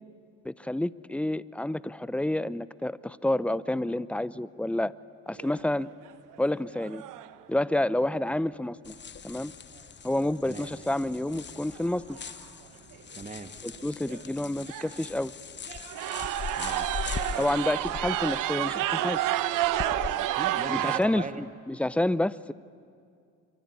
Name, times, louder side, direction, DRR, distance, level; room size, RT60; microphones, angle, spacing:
voice 1, 0.4-4.9 5.3-5.9 6.4-7.0 7.5-8.9 9.2-9.5 10.0-12.2 13.6-15.3 17.4-19.2 20.7-22.5, left 1 dB, 5° left, 18 dB, 0.7 m, -29 dB
sound 1, 5.4-5.8 6.3-6.4 6.8-7.3 10.5-10.6 11.8-11.9 12.1-12.4 12.9-13.0 13.7-13.8 14.1-14.2 14.7-15.1 15.7-21.0, right 13 dB, 80° right, 1.2 m, -30 dB
sound 2, 8.8-20.1, left 6 dB, 35° left, 1.0 m, -41 dB
voice 2, 13.1-13.5 16.5-16.9 20.1-21.4, right 4 dB, 25° right, 10 dB, 1.7 m, -39 dB
24.5 x 24.0 x 9.7 m, 2.3 s
cardioid pair, 85°, 32 cm